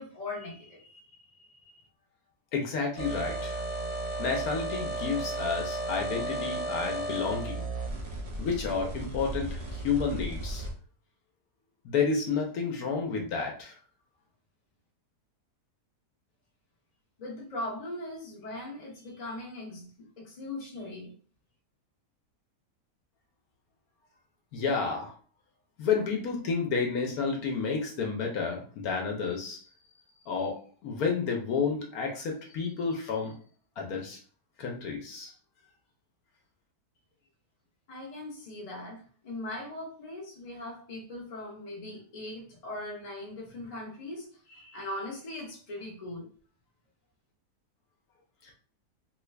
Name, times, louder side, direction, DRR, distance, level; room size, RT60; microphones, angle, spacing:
voice 1, 0.0-1.9 17.2-21.1 37.9-46.3, left 1 dB, 35° left, -2 dB, 0.6 m, -40 dB
voice 2, 2.5-3.6 4.2-7.7 8.4-10.7 11.8-13.7 24.5-25.1 25.8-29.6 30.3-30.6 30.8-33.3 33.8-34.2 34.6-35.3, left 5 dB, 65° left, 1 dB, 1.1 m, -30 dB
sound 1, 3.0-10.7, right 1 dB, 50° right, 0.9 m, -34 dB
3.1 x 2.4 x 3.2 m, 0.43 s
omnidirectional pair, 1.8 m